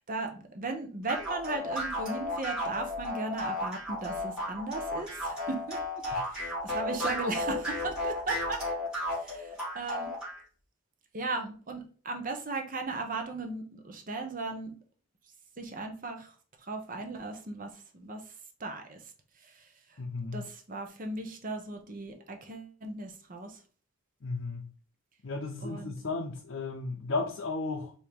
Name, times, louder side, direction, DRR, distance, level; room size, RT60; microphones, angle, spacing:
voice 1, 0.0-8.6 9.1-10.1 11.1-14.7 15.6-16.3 16.6-18.3 18.6-19.0 19.4-20.0 20.3-23.6 25.6-25.9, right 3 dB, 40° right, 0.7 m, -37 dB
sound 1, 1.1-10.4, left 1 dB, 5° right, 2.3 m, -34 dB
voice 2, 20.0-20.4 24.2-24.7 25.2-27.9, left 3 dB, 65° left, 0.6 m, -34 dB
4.7 x 2.7 x 3.5 m
head